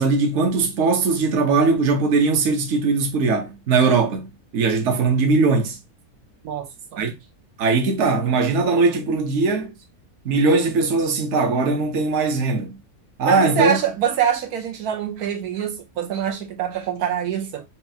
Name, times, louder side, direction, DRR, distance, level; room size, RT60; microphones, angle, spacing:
voice 1, 0.0-4.3 4.5-5.8 7.0-7.1 7.6-9.7 10.2-12.8 13.2-13.8, right 4 dB, 55° right, 1.1 m, -20 dB
voice 2, 6.4-7.1 13.3-17.6, right 9 dB, 85° right, 1.2 m, -25 dB
5.7 x 2.3 x 2.7 m
omnidirectional pair, 1.6 m